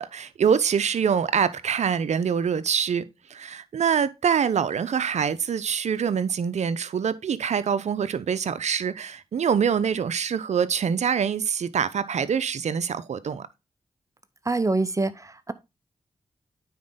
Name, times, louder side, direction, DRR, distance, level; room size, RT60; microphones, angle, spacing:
voice 1, 0.0-3.0 3.3-13.5, right 7 dB, 75° right, 0.7 m, -25 dB
voice 2, 14.5-15.5, right 3 dB, 25° right, 0.9 m, -25 dB
9.4 x 4.4 x 3.8 m
cardioid pair, 40°, 12 cm